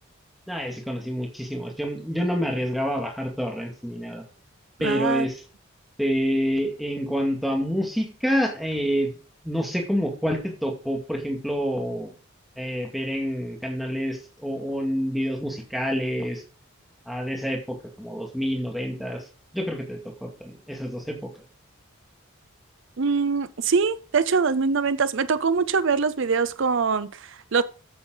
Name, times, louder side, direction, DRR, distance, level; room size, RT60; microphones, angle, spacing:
voice 1, 0.5-4.2 4.8-5.4 6.0-9.2 9.4-12.1 12.6-16.4 17.1-19.2 19.5-21.3, equal, ahead, 2.2 m, -27 dB
voice 2, 4.8-5.3 23.0-27.6, right 5 dB, 60° right, 0.5 m, -23 dB
14.0 x 7.7 x 3.9 m
head